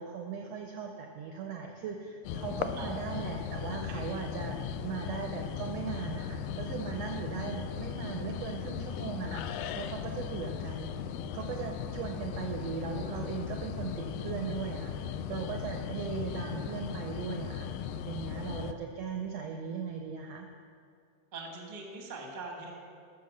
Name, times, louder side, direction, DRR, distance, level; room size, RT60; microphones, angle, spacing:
voice 1, 0.0-10.9 11.3-17.7 18.1-20.5, right 6 dB, 75° right, 3 dB, 1.5 m, -38 dB
sound 1, 2.2-18.7, left 8 dB, 90° left, 2.3 m, -37 dB
voice 2, 21.3-22.7, right 3 dB, 35° right, 0 dB, 0.7 m, -42 dB
13.5 x 7.1 x 6.4 m, 2.3 s
omnidirectional pair, 3.8 m